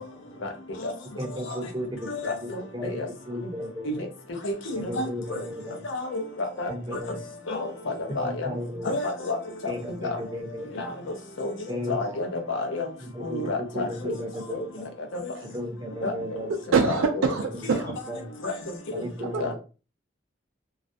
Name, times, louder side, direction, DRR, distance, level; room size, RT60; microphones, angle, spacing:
voice 1, 1.2-3.0 3.3-3.9 4.8-5.8 6.7-7.2 8.2-8.9 9.7-10.8 11.7-12.1 13.0-14.9 15.4-16.6 17.7-17.8 18.1-18.3 18.9-19.5, equal, 20° right, 2 dB, 0.5 m, -35 dB
voice 2, 2.1-3.1 3.9-4.0 4.4-5.4 5.8-7.0 7.5-8.5 8.8-9.4 9.6-9.7 10.0-10.2 10.8-10.9 11.4-11.5 11.9-12.9 13.2-14.1 14.5-14.6 15.1-15.3 16.0-16.1 16.8-17.0 17.7-17.8 18.4-18.5 19.0-19.1 19.4-19.5, left 2 dB, 70° left, 4 dB, 0.6 m, -30 dB
voice 3, 16.5-18.0 19.2-19.4, right 5 dB, 80° right, 4 dB, 0.4 m, -25 dB
2.3 x 2.1 x 2.5 m, 0.34 s
head